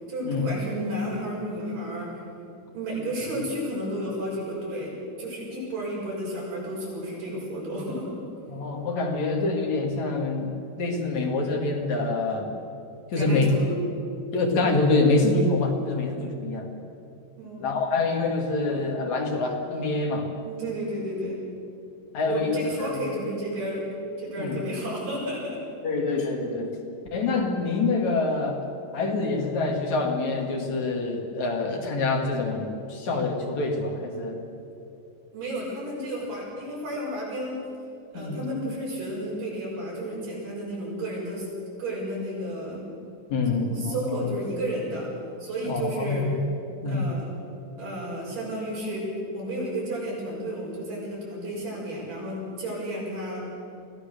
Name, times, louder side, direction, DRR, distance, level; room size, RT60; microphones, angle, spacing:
voice 1, 0.1-2.2 2.7-4.9 5.2-8.1 13.2-13.7 17.4-17.6 20.4-21.4 22.2-23.9 24.2-25.6 35.3-37.6 38.1-41.5 41.8-42.8 43.6-45.1 45.4-46.3 46.9-47.3 47.8-49.1 49.3-53.5, right 1 dB, 85° right, -5 dB, 8.0 m, -32 dB
voice 2, 8.5-12.5 13.1-13.8 14.3-16.7 17.6-20.3 22.1-22.9 24.4-24.6 25.8-26.8 27.1-28.6 28.9-34.4 38.1-38.4 43.3-44.3 45.6-46.3 46.8-47.0, left 3 dB, 60° left, 2 dB, 3.3 m, -26 dB
24.0 x 16.5 x 6.8 m, 2.6 s
omnidirectional pair, 3.7 m